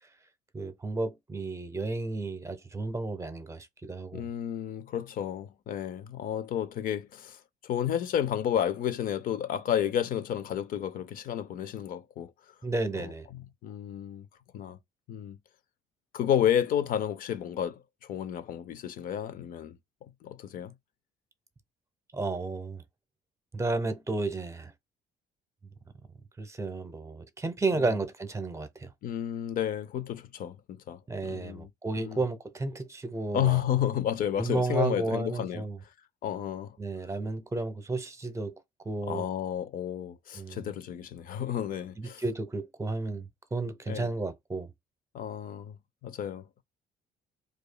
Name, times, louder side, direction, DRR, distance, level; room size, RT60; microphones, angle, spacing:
voice 1, 0.5-4.3 12.6-13.3 22.1-22.8 23.5-24.7 26.4-28.9 31.1-33.6 34.4-35.8 36.8-38.5 38.8-39.3 40.3-40.7 42.0-44.7, right 3 dB, 15° right, 0.7 m, -32 dB
voice 2, 4.1-12.3 13.0-14.3 14.5-14.8 15.1-15.4 16.1-19.8 20.2-20.7 27.8-27.9 29.0-31.7 32.0-32.2 33.3-35.7 36.2-36.8 39.1-42.2 43.9-44.1 45.1-45.8 46.0-46.5, left 10 dB, 55° left, 0.4 m, -31 dB
4.9 x 2.3 x 2.2 m
cardioid pair, 110°, 17 cm